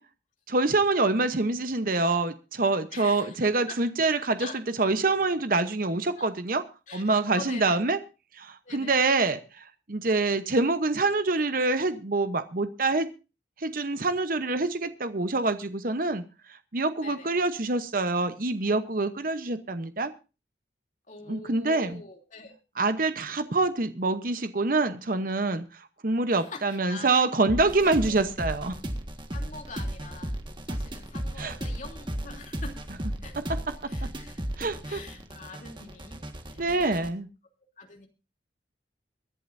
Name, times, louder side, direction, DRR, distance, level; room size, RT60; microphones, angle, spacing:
voice 1, 0.5-4.5 4.8-6.6 6.9-8.0 8.3-13.1 13.6-16.2 16.5-20.1 21.3-22.0 22.8-28.7 31.4-31.5 33.4-33.5 34.6-35.0 36.6-37.3, right 3 dB, 50° right, 10 dB, 0.9 m, -26 dB
voice 2, 2.9-3.4 3.7-3.8 4.4-4.6 6.2-6.3 6.9-7.9 8.6-8.9 10.1-10.2 17.0-17.3 21.1-22.6 26.4-27.1 27.8-28.1 29.3-30.4 30.7-32.8 33.2-33.3 33.9-36.2 36.5-37.1 37.8-38.1, left 3 dB, 45° left, 3 dB, 3.1 m, -44 dB
sound 1, 27.5-37.1, right 1 dB, 25° right, 1.6 m, -35 dB
24.5 x 11.0 x 2.7 m, 0.31 s
head